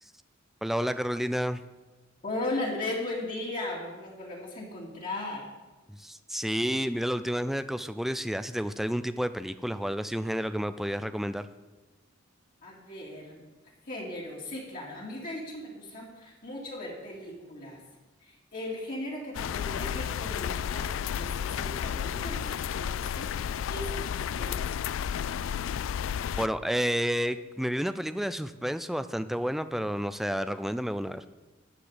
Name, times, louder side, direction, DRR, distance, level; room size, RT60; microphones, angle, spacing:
voice 1, 0.6-1.6 5.9-11.5 26.4-31.3, equal, ahead, 11 dB, 0.4 m, -30 dB
voice 2, 2.2-5.5 12.6-13.5 13.8-17.8 18.2-24.8, left 1 dB, 45° left, -5 dB, 2.6 m, -37 dB
sound 1, 19.3-26.5, left 8 dB, 70° left, 0.3 m, -32 dB
13.5 x 4.9 x 9.1 m, 1.1 s
head